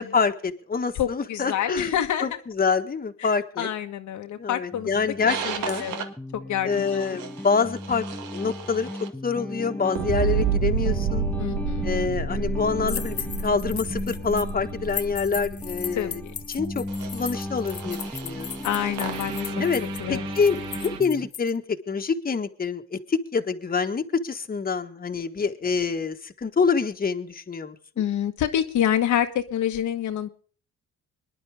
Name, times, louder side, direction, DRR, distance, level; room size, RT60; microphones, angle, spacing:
voice 1, 0.0-1.9 2.2-3.7 4.4-5.4 5.6-5.8 6.6-8.0 8.3-11.3 11.8-16.2 16.5-16.8 17.1-18.6 19.6-19.8 20.1-27.8, left 5 dB, 30° left, 6 dB, 1.5 m, -26 dB
voice 2, 0.9-2.4 3.2-3.3 3.6-4.9 5.4-6.1 6.3-7.2 11.4-11.8 15.9-16.3 18.6-19.7 20.0-20.3 28.0-30.3, left 10 dB, 75° left, 6 dB, 1.4 m, -27 dB
sound 1, 4.7-21.3, left 1 dB, 5° left, 1.0 m, -36 dB
sound 2, 5.3-6.0 6.7-9.1 10.0-21.0, right 6 dB, 85° right, 2.0 m, -31 dB
sound 3, 12.9-14.5 14.9-21.5, left 9 dB, 50° left, 1.0 m, -36 dB
24.5 x 11.0 x 3.5 m, 0.42 s
cardioid pair, 90°, 30 cm